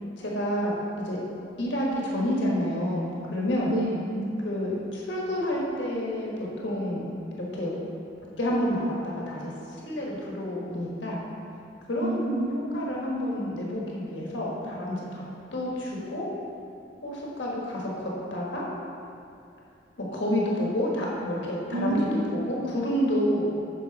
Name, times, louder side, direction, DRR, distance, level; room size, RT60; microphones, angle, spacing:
voice 1, 0.2-0.7 1.0-1.2 1.6-3.7 4.4-6.3 6.6-7.1 7.4-7.8 8.4-9.5 9.8-11.2 11.9-12.4 12.7-15.2 15.5-16.3 17.0-18.6 20.0-22.0 22.3-23.5, equal, 80° left, -4 dB, 1.5 m, -29 dB
voice 2, 3.7-4.2 12.0-12.9 21.7-22.7, right 1 dB, 80° right, -8 dB, 1.2 m, -29 dB
6.9 x 6.1 x 4.1 m, 2.6 s
head